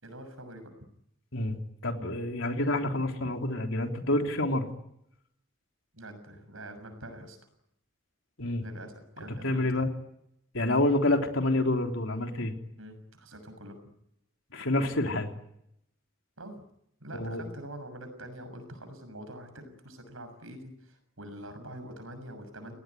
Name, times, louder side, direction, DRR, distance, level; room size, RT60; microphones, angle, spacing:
voice 1, 0.0-0.7 5.9-7.4 8.6-9.9 12.8-13.8 16.4-16.6 17.0-22.8, right 1 dB, 80° right, 9 dB, 6.7 m, -45 dB
voice 2, 1.3-4.7 8.4-8.6 9.4-9.9 10.5-12.5 14.5-15.3 17.1-17.4, left 1 dB, 70° left, 4 dB, 3.5 m, -28 dB
28.0 x 19.0 x 9.7 m, 0.79 s
head